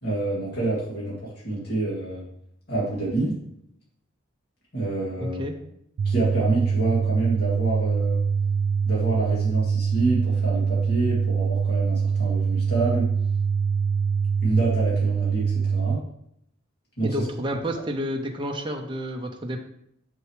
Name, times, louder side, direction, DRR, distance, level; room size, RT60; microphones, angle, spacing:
voice 1, 0.0-2.2 2.7-3.4 4.7-5.4 6.0-8.2 8.8-13.1 14.4-16.0 17.0-17.2, right 2 dB, 50° left, -6 dB, 2.5 m, -27 dB
voice 2, 5.2-5.5 17.0-19.6, equal, 25° right, 2 dB, 0.6 m, -30 dB
sound 1, 6.0-16.0, right 6 dB, 75° right, 0.3 m, -24 dB
7.2 x 6.3 x 3.2 m, 0.74 s
head